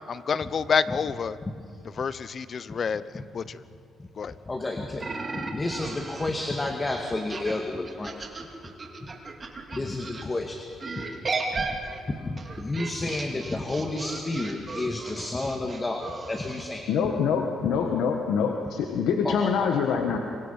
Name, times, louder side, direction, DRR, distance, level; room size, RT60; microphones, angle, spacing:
voice 1, 0.1-1.4 2.0-3.6 4.2-4.3, left 6 dB, 50° left, 15 dB, 0.8 m, -28 dB
voice 2, 4.5-5.1 5.3-8.2 9.7-10.6 11.6-11.7 12.3-16.9 19.2-19.8, left 2 dB, 20° left, 3 dB, 2.0 m, -31 dB
sound 1, 5.0-10.2 10.8-16.7, right 3 dB, 35° right, 3.0 m, -36 dB
voice 3, 16.9-20.2, left 6 dB, 85° left, 3 dB, 1.6 m, -25 dB
26.5 x 24.0 x 5.8 m, 2.4 s
cardioid pair, 90°, 0 cm